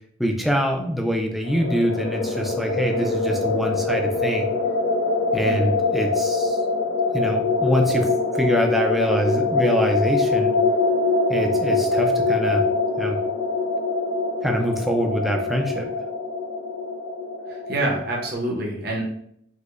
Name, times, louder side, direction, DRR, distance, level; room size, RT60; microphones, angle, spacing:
voice 1, 0.2-4.5 5.3-6.6 7.1-8.1 8.3-10.6 11.3-12.6 13.0-13.2 14.4-15.9, equal, ahead, 2 dB, 0.3 m, -24 dB
sound 1, 1.4-18.3, left 3 dB, 85° left, 0.5 m, -24 dB
voice 2, 5.4-5.7 17.5-19.0, right 2 dB, 55° right, -2 dB, 0.8 m, -27 dB
4.8 x 2.1 x 2.4 m, 0.71 s
head